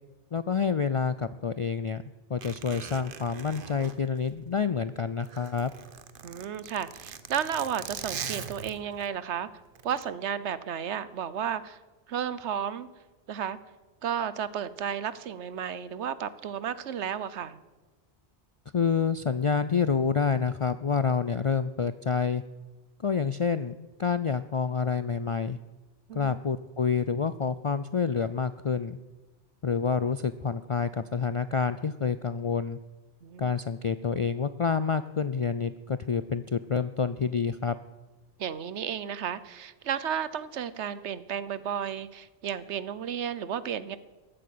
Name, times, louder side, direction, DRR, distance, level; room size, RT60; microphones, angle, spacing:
voice 1, 0.3-2.0 2.3-5.7 18.7-22.4 23.0-25.6 26.1-29.0 29.6-32.8 33.4-37.8, left 6 dB, 60° left, 13 dB, 0.3 m, -28 dB
Zipper (clothing), 2.4-4.8 5.1-9.1 9.7-10.0, right 6 dB, 55° right, 1.0 m, -41 dB
voice 2, 6.2-9.5 9.8-11.8 12.1-12.9 13.3-13.6 14.0-17.6 26.1-26.4 33.2-33.5 38.4-44.0, right 8 dB, 85° right, 16 dB, 1.1 m, -33 dB
14.5 x 8.8 x 8.5 m, 1.2 s
omnidirectional pair, 1.1 m